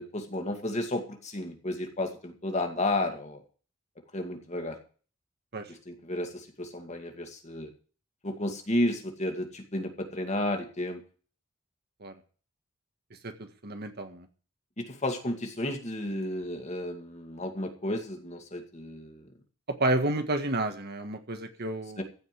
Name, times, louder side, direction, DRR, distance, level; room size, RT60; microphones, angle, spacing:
voice 1, 0.0-3.4 4.1-4.8 5.7-7.7 8.2-11.0 14.8-19.3 22.0-22.1, left 1 dB, 35° left, 4 dB, 2.3 m, -32 dB
voice 2, 13.2-14.3 19.8-22.0, right 1 dB, 50° right, 6 dB, 1.7 m, -30 dB
15.5 x 5.4 x 9.3 m, 0.40 s
head